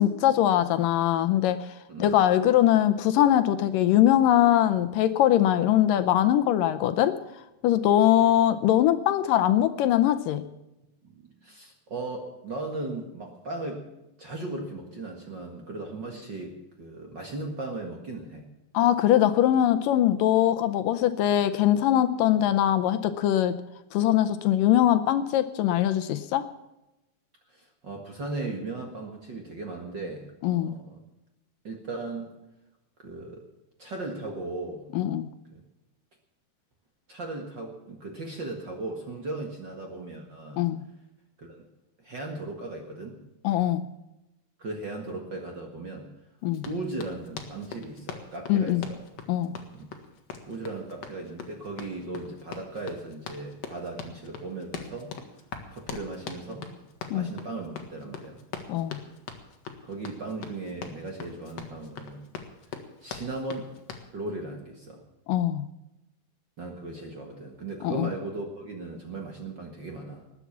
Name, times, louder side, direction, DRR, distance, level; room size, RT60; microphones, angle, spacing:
voice 1, 0.0-1.7 2.0-7.2 7.6-10.5 18.7-23.6 23.9-26.5 30.4-30.8 34.9-35.3 40.6-40.8 43.4-43.8 46.4-46.7 48.5-48.8 49.3-49.5 57.1-57.3 58.7-59.0 65.3-65.7 67.8-68.1, left 12 dB, 75° left, 11 dB, 2.2 m, -22 dB
voice 2, 11.0-13.8 14.2-18.5 27.5-31.0 31.6-32.3 33.0-33.5 33.8-34.9 35.5-35.6 37.1-40.6 41.4-41.6 42.0-43.2 44.6-46.1 46.6-49.0 49.7-49.9 50.4-55.1 55.7-56.7 57.1-58.4 59.8-62.2 63.0-63.7 64.1-65.0 66.6-70.2, right 2 dB, 40° right, 2 dB, 1.7 m, -37 dB
Run, 46.5-64.1, left 6 dB, 55° left, 2.2 m, -42 dB
19.5 x 8.3 x 7.2 m, 0.95 s
omnidirectional pair, 4.2 m